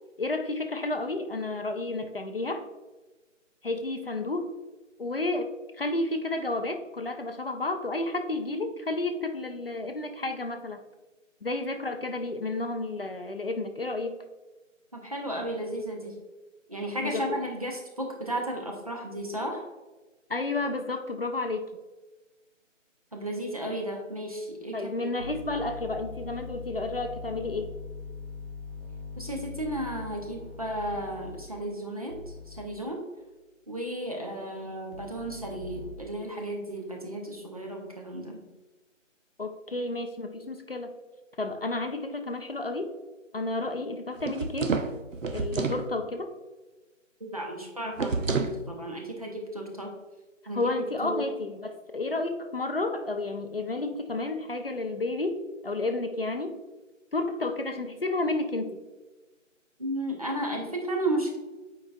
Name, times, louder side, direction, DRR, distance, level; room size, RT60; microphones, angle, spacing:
voice 1, 0.2-2.6 3.6-4.5 5.0-5.5 5.8-10.8 11.4-14.2 17.0-17.4 20.3-21.7 24.7-27.7 39.4-40.9 41.4-42.9 43.3-44.8 45.3-46.3 50.5-56.6 57.1-58.8, left 2 dB, 50° left, 6 dB, 0.5 m, -31 dB
voice 2, 14.9-16.1 16.7-19.7 23.1-25.1 29.2-32.2 32.5-33.0 33.7-38.5 47.2-49.9 50.5-50.7 51.0-51.3 59.8-61.4, right 1 dB, 30° right, 1 dB, 0.7 m, -34 dB
sound 1, 25.2-31.4 32.1-32.6 34.9-35.9, left 4 dB, 45° right, 1.0 m, -41 dB
sound 2, 44.2-45.9 48.0-48.6, right 4 dB, 75° right, 0.7 m, -29 dB
8.8 x 4.8 x 2.2 m, 1.2 s
figure-of-eight pair, 160°, 39 cm